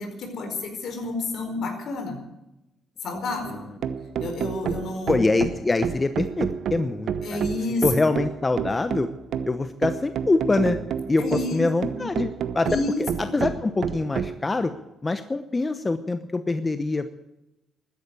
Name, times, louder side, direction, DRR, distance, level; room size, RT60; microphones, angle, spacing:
voice 1, 0.0-2.2 3.0-3.6 4.2-5.2 7.2-7.8 11.2-12.0 12.7-13.5, left 2 dB, 70° left, 5 dB, 4.5 m, -30 dB
sound 1, 3.5-14.4, right 7 dB, 70° right, 1.0 m, -30 dB
voice 2, 5.1-7.4 7.8-9.1 9.4-10.8 11.1-12.7 13.0-14.7 15.0-17.1, left 3 dB, 25° left, 10 dB, 0.9 m, -24 dB
14.0 x 10.0 x 9.7 m, 0.93 s
cardioid pair, 90°, 0 cm